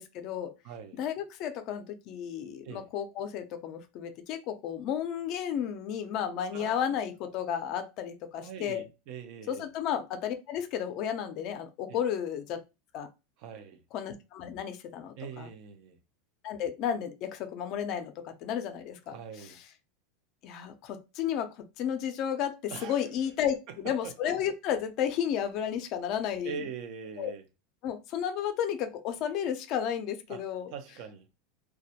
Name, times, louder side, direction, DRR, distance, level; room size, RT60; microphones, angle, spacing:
voice 1, 0.0-0.5 0.9-8.8 9.5-12.6 12.9-13.1 13.9-15.5 16.4-19.6 20.4-26.6 27.2-27.3 27.8-30.7, left 9 dB, 50° left, 0.5 m, -33 dB
voice 2, 0.6-1.0 2.6-2.9 6.5-7.1 8.4-9.7 11.9-12.0 13.4-13.8 15.2-16.0 19.1-19.6 22.7-23.1 24.0-24.1 26.4-27.4 30.3-30.4 30.7-31.2, right 6 dB, 55° right, 0.5 m, -42 dB
2.2 x 2.0 x 2.8 m
supercardioid pair, 135°, 0 cm